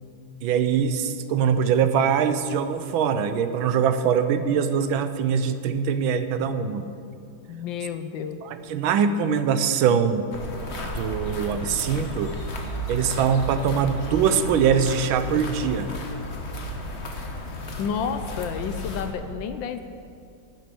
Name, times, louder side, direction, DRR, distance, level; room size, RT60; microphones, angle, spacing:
voice 1, 0.4-6.9 8.4-10.3 10.8-12.4 12.9-15.9, right 7 dB, 75° right, 10 dB, 1.4 m, -23 dB
voice 2, 7.5-8.4 17.8-19.8, left 7 dB, 75° left, 9 dB, 1.2 m, -30 dB
sound 1, 10.3-19.1, equal, 40° left, 1.2 m, -33 dB
11.5 x 7.8 x 9.2 m, 2.5 s
omnidirectional pair, 2.4 m